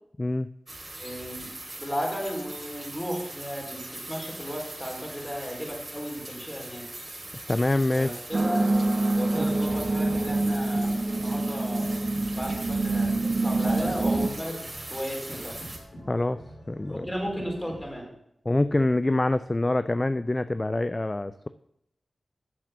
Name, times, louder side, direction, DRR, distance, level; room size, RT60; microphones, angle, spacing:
voice 1, 0.2-0.5 7.5-8.2 16.1-16.4 16.7-17.1 18.5-21.5, left 2 dB, 30° left, 12 dB, 0.4 m, -25 dB
sound 1, 0.7-15.8, right 2 dB, 35° right, 2.7 m, -41 dB
voice 2, 1.0-6.9 7.9-8.7 9.1-12.0 12.4-14.6 14.9-15.6 16.9-18.0, equal, 10° left, -1 dB, 4.3 m, -34 dB
sound 2, 8.3-14.3, right 2 dB, 50° right, 0.7 m, -26 dB
sound 3, 9.3-18.0, equal, 85° left, 4.2 m, -46 dB
7.6 x 7.4 x 6.9 m, 0.77 s
cardioid pair, 50°, 0 cm